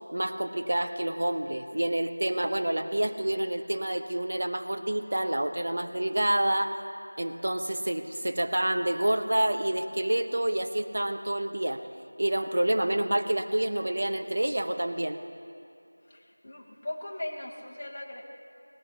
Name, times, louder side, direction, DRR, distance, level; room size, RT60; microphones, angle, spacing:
voice 1, 0.1-6.8 7.2-11.8 12.2-15.2, right 1 dB, 45° right, 7 dB, 0.8 m, -28 dB
voice 2, 16.0-18.2, left 1 dB, 25° left, -2 dB, 1.0 m, -39 dB
19.0 x 17.5 x 2.8 m, 2.6 s
figure-of-eight pair, 175°, 0 cm